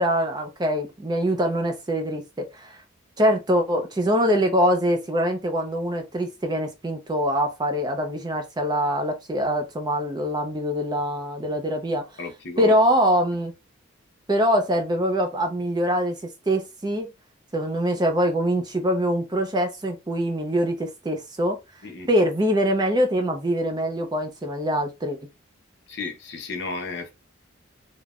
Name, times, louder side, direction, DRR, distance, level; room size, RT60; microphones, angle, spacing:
voice 1, 0.0-2.8 3.2-12.1 12.6-13.5 14.3-17.1 17.5-21.6 22.1-25.3, equal, 20° right, 0.4 m, -24 dB
voice 2, 12.2-12.7 21.8-22.1 25.9-27.1, left 3 dB, 55° left, 0.7 m, -33 dB
3.3 x 2.1 x 2.3 m
head